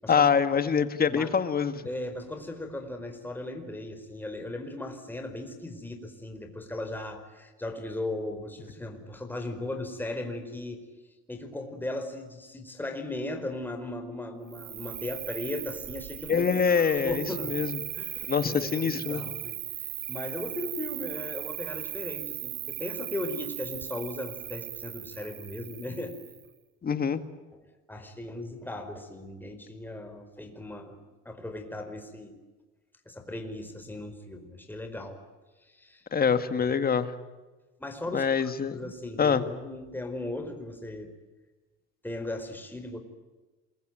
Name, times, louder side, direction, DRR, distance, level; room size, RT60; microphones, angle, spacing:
voice 1, 0.1-1.9 16.3-17.8 18.3-19.2 26.8-27.2 36.1-37.1 38.1-38.7 39.2-39.4, left 6 dB, 30° left, 11 dB, 2.0 m, -25 dB
voice 2, 1.8-10.8 11.3-17.5 17.9-26.2 27.9-31.0 31.2-32.4 33.0-35.2 35.6-36.0 37.8-41.1 42.0-43.0, left 1 dB, 5° left, 5 dB, 4.7 m, -37 dB
Cricket, 14.5-26.5, right 16 dB, 75° right, 1.7 m, -38 dB
28.0 x 22.5 x 9.2 m, 1.2 s
cardioid pair, 125°, 30 cm